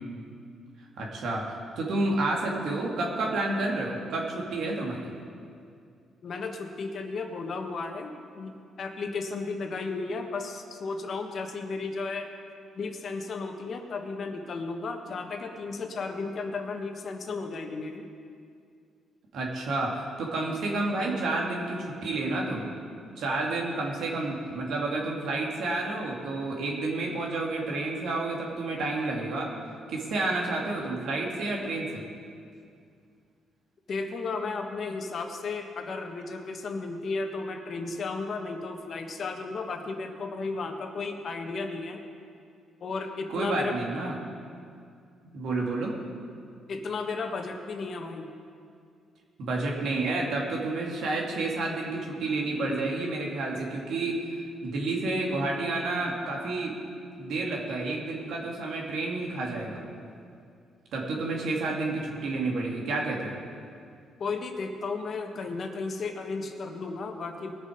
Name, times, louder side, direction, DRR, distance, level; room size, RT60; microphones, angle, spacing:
voice 1, 1.0-5.1 19.3-22.7 23.2-29.5 29.9-32.0 43.3-44.1 45.2-45.9 49.4-54.1 54.6-56.7 57.2-59.8 60.9-63.3, right 2 dB, 75° right, -1 dB, 2.5 m, -30 dB
voice 2, 6.2-12.3 12.7-18.1 33.9-42.0 42.8-43.8 46.7-48.3 64.2-67.5, left 4 dB, 50° left, 4 dB, 1.4 m, -34 dB
20.0 x 6.9 x 5.2 m, 2.3 s
cardioid pair, 90°, 0 cm